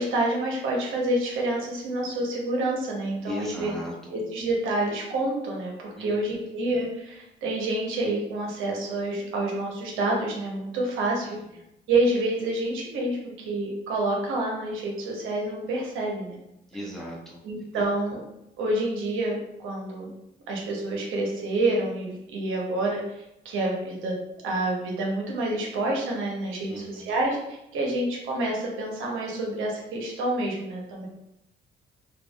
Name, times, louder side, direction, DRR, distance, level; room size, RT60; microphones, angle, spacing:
voice 1, 0.0-3.7 4.1-11.4 11.9-16.4 17.4-18.2 18.6-20.1 20.5-24.2 24.4-31.1, right 2 dB, 85° right, -1 dB, 0.8 m, -28 dB
voice 2, 3.3-4.2 5.9-6.5 11.2-11.4 16.7-17.4 17.7-17.8 26.6-27.1, left 1 dB, ahead, -4 dB, 0.8 m, -38 dB
3.3 x 2.3 x 2.3 m, 0.85 s
cardioid pair, 90°, 20 cm